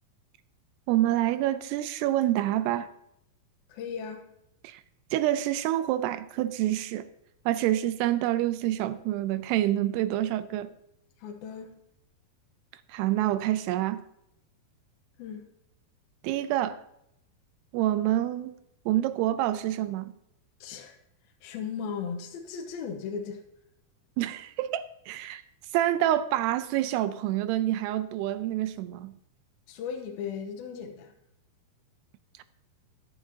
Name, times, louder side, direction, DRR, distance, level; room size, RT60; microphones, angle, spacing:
voice 1, 0.9-2.9 4.6-4.8 5.1-7.1 7.5-10.7 12.9-14.0 16.2-16.8 17.7-18.5 18.9-20.1 24.2-25.4 25.7-29.1, right 13 dB, 85° right, 2.7 m, -27 dB
voice 2, 3.7-4.3 11.2-11.8 15.2-15.5 20.6-21.0 21.4-23.4 29.7-31.1, left 6 dB, 75° left, 2.7 m, -36 dB
14.5 x 10.5 x 2.8 m
omnidirectional pair, 4.6 m